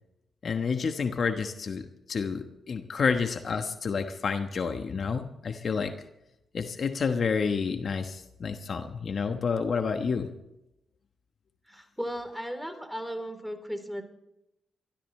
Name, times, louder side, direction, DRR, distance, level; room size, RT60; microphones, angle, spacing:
voice 1, 0.4-5.9 6.5-10.3, left 5 dB, 60° left, 7 dB, 1.2 m, -29 dB
voice 2, 11.7-14.0, equal, ahead, 6 dB, 3.7 m, -36 dB
23.5 x 14.0 x 3.3 m, 0.86 s
cardioid pair, 60°, 0 cm